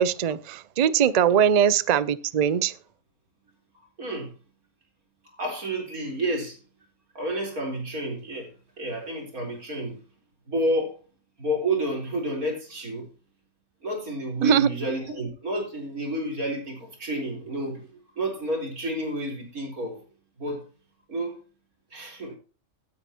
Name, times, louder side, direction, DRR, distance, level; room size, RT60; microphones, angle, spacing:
voice 1, 0.0-2.7 14.4-14.7, right 8 dB, 65° right, 16 dB, 0.4 m, -21 dB
voice 2, 4.0-4.3 5.3-6.6 7.1-8.5 8.8-10.0 10.5-11.0 11.4-13.1 13.8-17.9 18.1-20.0 20.4-20.6 21.1-21.4 21.9-22.4, right 1 dB, 85° right, 0 dB, 4.5 m, -30 dB
16.5 x 9.5 x 2.9 m, 0.35 s
omnidirectional pair, 1.5 m